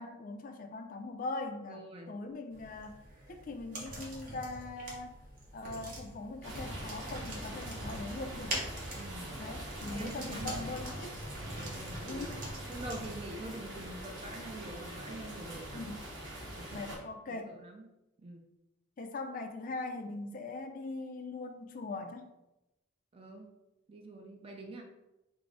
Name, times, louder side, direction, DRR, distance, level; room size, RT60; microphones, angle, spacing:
voice 1, 0.0-1.8 2.1-3.0 3.3-5.1 5.5-8.6 9.4-11.2 12.1-12.4 15.7-16.0 16.7-17.6 19.0-22.3, left 2 dB, 45° left, 6 dB, 0.4 m, -41 dB
voice 2, 1.7-2.2 9.0-9.4 9.9-10.8 11.6-12.3 12.7-15.9 16.5-16.8 17.3-17.9 18.2-18.4 23.1-23.5 23.9-24.8, right 2 dB, 30° right, 2 dB, 0.4 m, -45 dB
sound 1, 2.5-13.3, right 1 dB, 45° right, 0.9 m, -44 dB
sound 2, 6.4-17.0, right 1 dB, 70° right, 1.0 m, -43 dB
4.5 x 2.0 x 3.8 m, 0.96 s
head